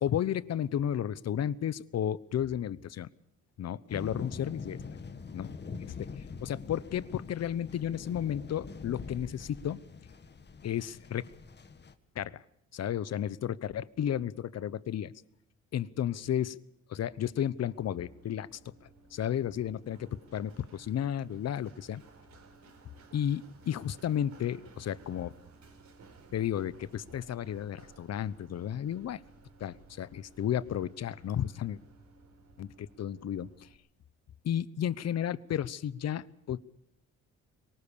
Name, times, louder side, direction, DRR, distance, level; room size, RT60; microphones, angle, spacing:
voice 1, 0.0-3.1 3.6-4.8 5.3-9.8 10.6-11.3 12.1-12.4 12.7-15.1 15.7-16.6 16.9-18.6 19.1-22.0 23.1-25.3 26.3-29.2 29.6-31.8 32.6-33.5 34.4-36.6, left 10 dB, 55° left, 19 dB, 1.0 m, -33 dB
the storm, 3.9-11.9, left 5 dB, 35° left, 1.7 m, -44 dB
Run, 17.6-33.7, right 3 dB, 65° right, 4.7 m, -57 dB
23.0 x 19.5 x 6.9 m, 0.77 s
cardioid pair, 90°, 30 cm